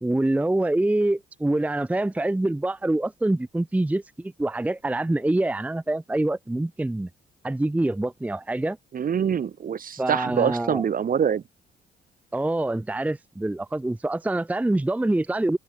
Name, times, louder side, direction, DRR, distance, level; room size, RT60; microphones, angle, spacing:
voice 1, 0.0-7.1 7.4-8.8 10.0-10.8 12.3-15.6, right 2 dB, 5° right, 0.6 m, -25 dB
voice 2, 8.9-11.4, right 7 dB, 45° right, 1.1 m, -25 dB
open air
cardioid pair, 90°, 20 cm